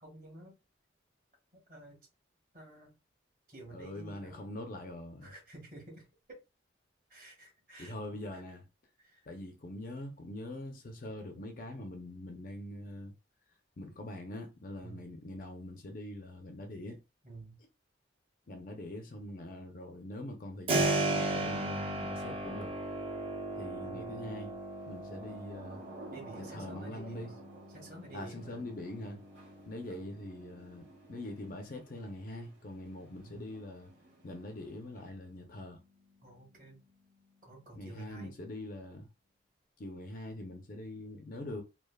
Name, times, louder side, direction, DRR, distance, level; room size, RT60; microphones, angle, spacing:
voice 1, 0.0-0.6 1.7-2.0 2.5-2.9 3.5-4.5 5.2-6.4 7.1-8.0 8.3-8.4 9.0-9.3 14.8-15.1 17.2-17.6 23.8-24.2 26.1-27.3 27.7-28.6 29.8-30.0 33.2-33.5 36.2-36.8 37.4-38.3, right 2 dB, 45° right, 1.4 m, -51 dB
voice 2, 3.7-5.3 7.8-8.7 9.3-13.1 13.8-17.0 18.5-22.7 23.6-24.6 24.9-25.8 26.5-27.3 28.1-29.2 29.7-33.9 34.2-35.8 37.7-39.1 39.8-41.6, left 1 dB, 45° left, 0.5 m, -43 dB
Keyboard (musical), 20.7-31.4, right 2 dB, 30° right, 0.6 m, -37 dB
Thunder / Rain, 24.8-35.4, right 2 dB, 70° right, 1.4 m, -54 dB
3.3 x 2.1 x 2.2 m
head